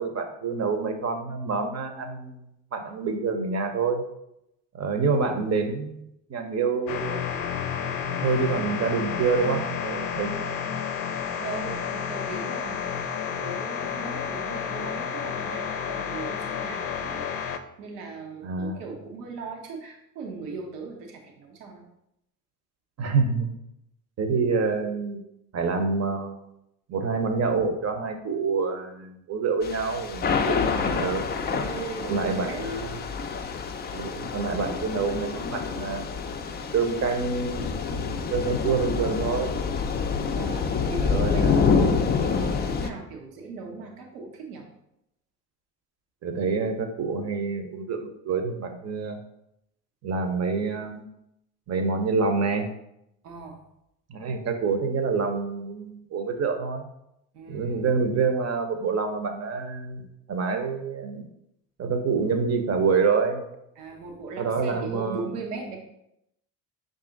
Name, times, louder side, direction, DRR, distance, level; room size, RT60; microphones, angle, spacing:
voice 1, 0.0-2.5 2.7-4.0 4.7-7.3 8.2-10.4 18.4-18.8 23.0-23.5 24.2-25.2 25.5-26.4 26.9-31.2 32.0-32.9 33.9-36.1 36.7-39.5 41.1-42.0 46.2-49.2 50.0-51.0 51.7-52.7 54.1-56.9 57.5-61.3 61.8-63.4 64.4-65.3, right 4 dB, 35° right, 7 dB, 0.7 m, -27 dB
sound 1, 6.9-17.6, left 7 dB, 75° left, 0.6 m, -31 dB
voice 2, 11.4-13.0 13.4-21.8 31.5-32.6 40.4-41.4 41.7-44.6 53.2-53.6 57.3-57.9 63.8-65.8, right 4 dB, 80° right, 2 dB, 0.9 m, -38 dB
Thunder / Rain, 29.6-42.9, left 5 dB, 25° left, 0.4 m, -27 dB
5.4 x 2.6 x 3.8 m, 0.82 s
hypercardioid pair, 55°, 46 cm